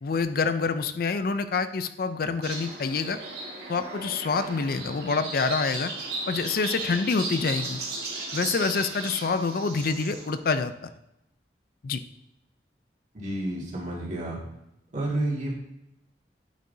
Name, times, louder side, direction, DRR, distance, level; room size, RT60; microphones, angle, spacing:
voice 1, 0.0-3.2 3.7-5.9 6.3-7.8 8.3-10.7 11.8-12.0, left 4 dB, 55° left, 10 dB, 0.4 m, -27 dB
sound 1, 2.4-10.4, right 2 dB, 60° right, 1.8 m, -36 dB
voice 2, 13.1-14.4 14.9-15.5, right 1 dB, 45° right, -3 dB, 2.0 m, -30 dB
8.5 x 7.3 x 2.7 m, 0.85 s
head